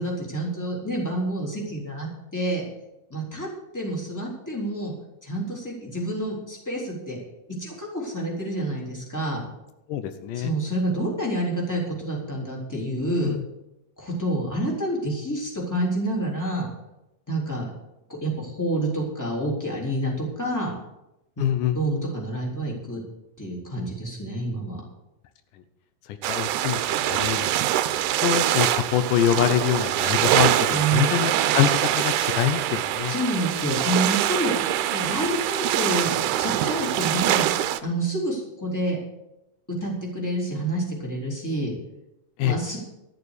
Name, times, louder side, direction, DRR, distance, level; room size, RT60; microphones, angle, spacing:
voice 1, 0.0-2.6 3.1-3.5 3.7-4.9 5.2-7.2 7.6-9.4 10.3-13.3 14.0-16.7 17.3-17.7 18.2-20.7 21.4-21.5 21.7-23.0 23.4-24.8 30.7-31.1 33.1-34.5 34.9-37.5 37.8-39.0 39.8-41.7 42.4-42.8, right 1 dB, 5° left, -3 dB, 3.3 m, -28 dB
voice 2, 9.9-10.5 13.2-13.4 21.4-21.8 26.3-27.5 28.2-33.1 42.4-42.6, left 10 dB, 85° left, 9 dB, 2.4 m, -24 dB
sound 1, 26.2-37.8, right 12 dB, 80° right, 2.1 m, -24 dB
13.5 x 6.9 x 8.2 m, 0.90 s
omnidirectional pair, 3.7 m